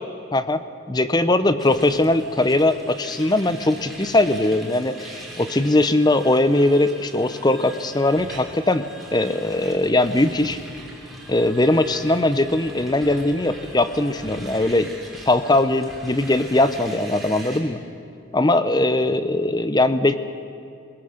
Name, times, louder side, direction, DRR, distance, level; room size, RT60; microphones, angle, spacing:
voice 1, 0.3-0.6 0.9-10.6 11.3-14.9 15.2-17.8 18.3-20.2, left 2 dB, 20° left, 12 dB, 0.7 m, -20 dB
sound 1, 1.6-17.6, right 1 dB, ahead, 3.3 m, -41 dB
21.5 x 21.0 x 6.6 m, 2.6 s
head